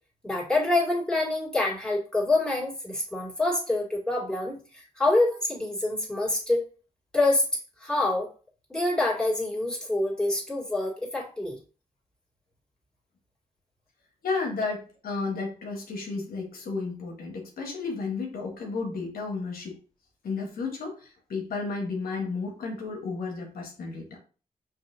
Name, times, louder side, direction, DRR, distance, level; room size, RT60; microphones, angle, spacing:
voice 1, 0.2-6.6 7.1-7.4 7.8-8.3 8.7-11.6, left 2 dB, 5° left, -4 dB, 2.3 m, -26 dB
voice 2, 14.2-19.8 20.2-24.2, left 4 dB, 80° left, 1 dB, 1.2 m, -33 dB
5.4 x 3.1 x 2.6 m, 0.36 s
cardioid pair, 55°, 15 cm